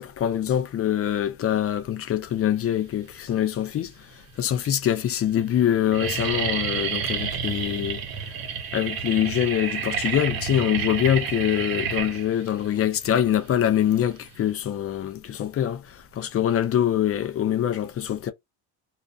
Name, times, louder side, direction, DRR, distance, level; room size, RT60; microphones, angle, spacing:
voice 1, 0.0-3.9 4.4-8.0 8.7-18.3, left 10 dB, 30° left, 0.4 m, -24 dB
sound 1, 3.3-3.9 4.6-4.7 4.9-5.3 5.6-14.5, right 7 dB, 50° right, 0.9 m, -30 dB
2.4 x 2.1 x 2.4 m
supercardioid pair, 100°, 46 cm